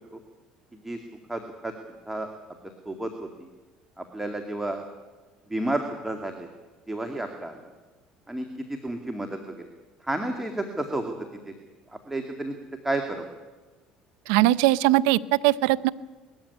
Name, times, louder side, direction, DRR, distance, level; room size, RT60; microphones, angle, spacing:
voice 1, 1.3-1.7 2.1-2.3 2.9-3.1 4.0-4.8 5.5-6.3 6.9-7.6 8.3-9.5 10.1-11.1 12.1-12.6 12.8-13.2, right 1 dB, 10° right, 4 dB, 2.3 m, -30 dB
voice 2, 14.3-15.9, right 16 dB, 80° right, 18 dB, 0.6 m, -20 dB
20.5 x 14.0 x 9.8 m, 1.2 s
supercardioid pair, 85°, 2 cm